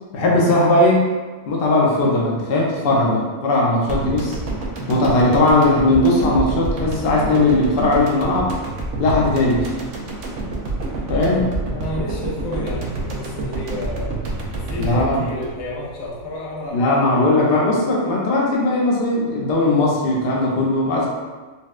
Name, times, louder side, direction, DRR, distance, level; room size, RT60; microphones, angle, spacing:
voice 1, 0.1-1.1 1.5-4.4 4.9-8.5 9.0-9.7 11.1-11.4 14.8-15.2 16.7-21.1, left 2 dB, 55° left, -3 dB, 0.7 m, -18 dB
sound 1, 3.9-16.2 16.5-16.6, right 2 dB, 70° right, 0.8 m, -28 dB
voice 2, 11.7-14.2 14.5-17.5, left 1 dB, 80° left, -6 dB, 1.2 m, -31 dB
4.2 x 2.1 x 2.4 m, 1.3 s
omnidirectional pair, 1.4 m